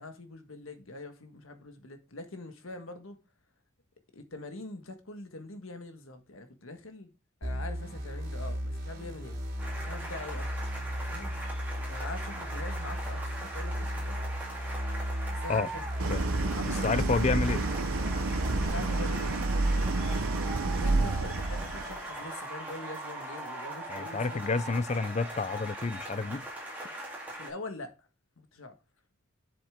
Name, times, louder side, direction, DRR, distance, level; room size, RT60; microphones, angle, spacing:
voice 1, 0.0-3.2 4.1-7.1 7.4-9.4 9.8-10.5 11.1-11.3 11.9-14.2 15.3-15.8 16.4-17.1 18.5-19.4 20.5-24.7 27.4-28.1 28.4-28.8, left 2 dB, 80° left, 1.5 m, -43 dB
sound 1, 7.4-18.7, equal, 45° right, 3.0 m, -35 dB
sound 2, 9.6-27.5, right 1 dB, 10° right, 3.3 m, -40 dB
Idling, 16.0-22.1, right 2 dB, 90° right, 0.8 m, -29 dB
voice 2, 16.8-17.6 20.9-21.1 23.9-26.4, left 4 dB, 30° left, 0.4 m, -29 dB
7.7 x 7.0 x 3.6 m
head